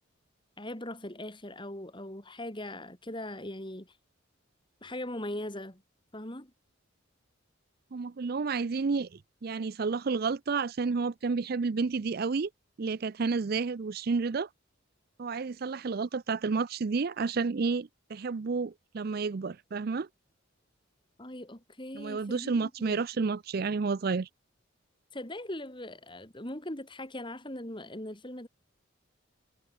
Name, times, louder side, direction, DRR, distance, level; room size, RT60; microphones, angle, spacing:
voice 1, 0.6-3.9 4.8-5.8 6.1-6.5 21.2-23.0 25.1-28.5, left 1 dB, 25° left, 3.6 m, -40 dB
voice 2, 7.9-9.1 9.4-12.5 12.8-14.5 15.2-20.1 21.9-24.3, right 4 dB, 50° right, 0.5 m, -30 dB
head